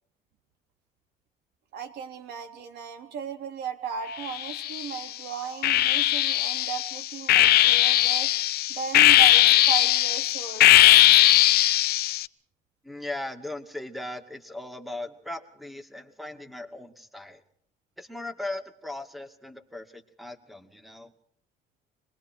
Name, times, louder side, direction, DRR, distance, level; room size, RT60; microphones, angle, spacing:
voice 1, 1.7-8.3 8.7-10.8, right 7 dB, 80° right, 5 dB, 3.5 m, -36 dB
sound 1, 4.2-5.0 5.6-12.3, left 14 dB, 70° left, 0.8 m, -19 dB
voice 2, 12.8-17.4 18.0-21.1, left 2 dB, ahead, 7 dB, 2.3 m, -38 dB
27.5 x 21.0 x 4.6 m, 0.64 s
cardioid pair, 110°, 17 cm